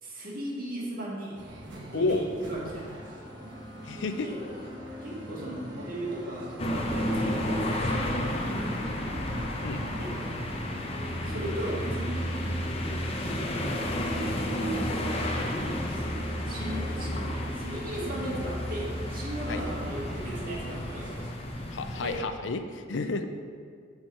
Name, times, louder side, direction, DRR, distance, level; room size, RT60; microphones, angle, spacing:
voice 1, 0.0-1.4 1.9-3.1 4.2-4.4 5.0-9.0 9.9-10.1 11.2-12.2 15.9-16.1 16.5-21.1 22.0-22.2, right 1 dB, 50° right, -4 dB, 2.1 m, -37 dB
sound 1, 1.4-21.3, right 1 dB, 70° right, 1.3 m, -43 dB
voice 2, 1.9-2.2 3.8-4.3 9.6-9.8 19.5-19.6 21.7-23.3, left 3 dB, 70° left, 8 dB, 0.6 m, -30 dB
sound 2, 3.0-19.3, left 2 dB, 5° right, 0.7 m, -48 dB
sound 3, 6.6-22.2, equal, 30° left, 0.8 m, -32 dB
9.6 x 4.6 x 5.9 m, 2.1 s
head